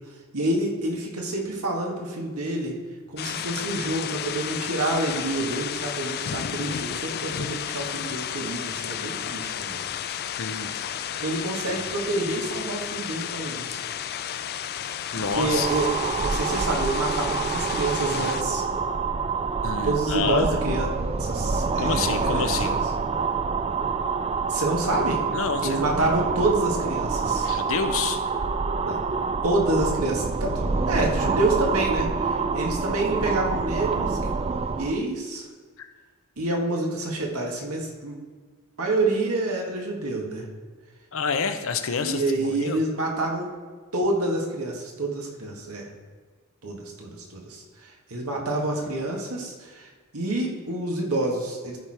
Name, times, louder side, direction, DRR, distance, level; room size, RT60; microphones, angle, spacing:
voice 1, 0.3-2.8 3.1-9.8 11.2-13.8 15.4-18.6 19.8-20.9 21.2-22.8 24.5-25.2 25.6-27.5 28.8-29.0 29.4-34.3 34.8-35.4 36.4-38.2 38.8-40.5 42.0-43.5 43.9-45.9 46.6-49.9 50.1-51.8, right 2 dB, 80° right, 0 dB, 1.8 m, -28 dB
sound 1, 3.2-18.4, left 9 dB, 45° left, 0.4 m, -32 dB
voice 2, 10.4-11.2 15.1-15.7 19.6-20.5 21.8-22.9 25.3-25.9 27.4-28.2 35.8-35.9 41.1-42.8, left 5 dB, 65° left, 8 dB, 0.8 m, -28 dB
sound 2, 15.1-35.0, right 4 dB, 30° right, 0.4 m, -27 dB
13.0 x 4.5 x 4.9 m, 1.5 s
head